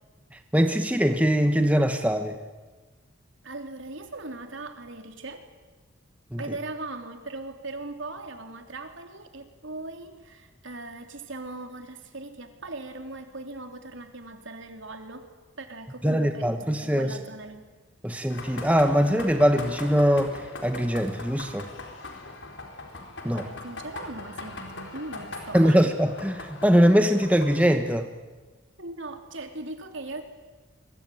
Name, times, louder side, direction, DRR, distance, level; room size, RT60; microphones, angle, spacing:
voice 1, 0.5-2.3 6.3-6.4 16.0-17.1 18.0-21.7 23.2-23.5 25.5-28.1, equal, 5° right, 6 dB, 1.2 m, -22 dB
voice 2, 3.4-5.4 6.4-15.3 15.6-17.6 23.3-25.8 28.8-30.2, right 2 dB, 65° right, 5 dB, 3.3 m, -39 dB
sound 1, 18.3-27.7, left 2 dB, 60° left, 4.3 m, -41 dB
25.5 x 23.5 x 9.3 m, 1.3 s
head